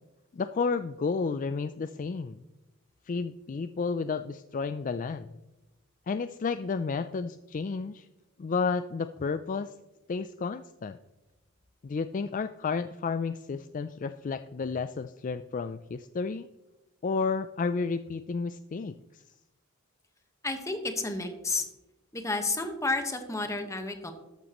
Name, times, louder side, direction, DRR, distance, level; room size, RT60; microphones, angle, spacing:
voice 1, 0.3-2.4 3.1-5.3 6.1-8.1 8.4-9.7 10.1-11.0 11.8-16.5 17.0-19.2, left 4 dB, 40° left, 11 dB, 0.4 m, -31 dB
voice 2, 20.4-21.6 22.1-24.1, left 3 dB, 15° left, 6 dB, 1.3 m, -31 dB
13.5 x 11.5 x 3.0 m, 1.0 s
head